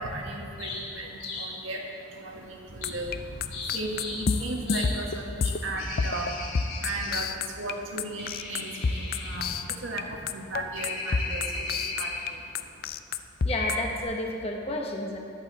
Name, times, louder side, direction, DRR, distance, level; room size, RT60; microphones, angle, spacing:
voice 1, 0.0-12.9, right 2 dB, 75° right, 0 dB, 1.7 m, -36 dB
sound 1, 0.6-1.6 2.8-3.0 3.5-4.3 4.7-5.0 5.8-7.2 8.2-9.4 10.7-12.4 13.5-14.0, left 2 dB, 80° left, 3.2 m, -36 dB
sound 2, 2.8-5.7 6.0-6.3 6.6-7.7 8.0-10.0 10.3-12.3 12.6-13.8, left 5 dB, 45° left, 0.4 m, -28 dB
voice 2, 13.4-15.2, left 1 dB, 30° left, 1 dB, 1.2 m, -31 dB
13.5 x 11.0 x 4.1 m, 2.6 s
head